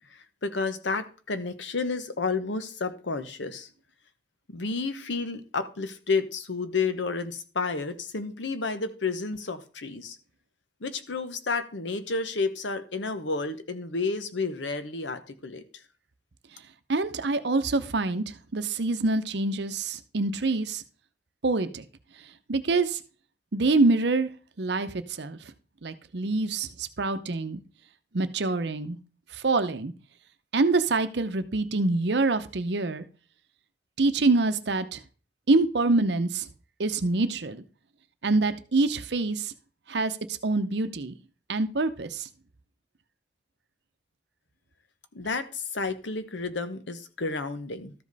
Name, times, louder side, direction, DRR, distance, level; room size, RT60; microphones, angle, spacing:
voice 1, 0.1-3.7 4.5-10.2 10.8-15.8 45.1-47.9, left 4 dB, 80° left, 1.0 m, -31 dB
voice 2, 16.9-20.8 21.4-21.8 22.5-23.0 23.5-24.3 24.6-25.4 25.8-27.6 28.1-29.0 29.3-29.9 30.5-33.0 34.0-35.0 35.5-36.5 36.8-37.6 38.2-39.5 39.9-40.2 40.4-41.1 41.5-42.3, right 3 dB, 65° right, 0.7 m, -25 dB
13.0 x 5.2 x 4.0 m
head